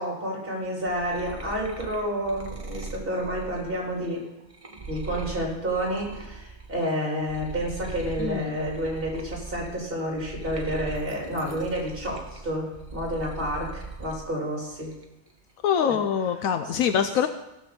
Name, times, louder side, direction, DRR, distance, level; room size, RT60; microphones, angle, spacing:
voice 1, 0.0-4.3 4.9-14.9 15.8-16.0, equal, 40° right, -2 dB, 3.7 m, -30 dB
sound 1, 0.6-6.9 7.2-14.2 14.6-15.3, right 3 dB, 25° right, 1.2 m, -40 dB
voice 2, 8.2-8.6 15.6-17.3, left 8 dB, 80° left, 8 dB, 1.1 m, -24 dB
16.5 x 6.1 x 7.0 m, 0.91 s
omnidirectional pair, 1.4 m